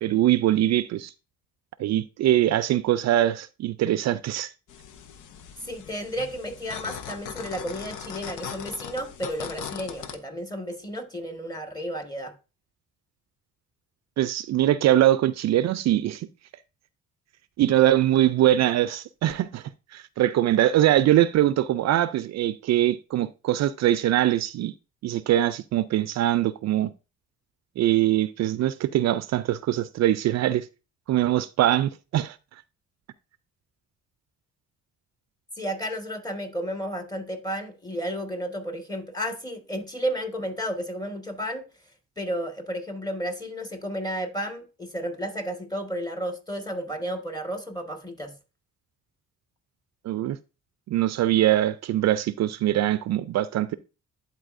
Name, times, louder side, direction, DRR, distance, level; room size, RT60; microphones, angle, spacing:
voice 1, 0.0-1.1 1.8-4.5 14.2-16.3 17.6-19.6 19.9-24.7 25.0-26.9 27.8-30.7 31.1-32.4 50.1-50.4 50.9-53.8, right 13 dB, 60° right, 0.4 m, -22 dB
sound 1, 4.7-10.2, left 8 dB, 80° left, 0.8 m, -39 dB
voice 2, 5.6-12.3 35.6-41.7 42.2-48.3, equal, 15° left, 1.6 m, -32 dB
11.5 x 4.2 x 2.5 m
cardioid pair, 90°, 30 cm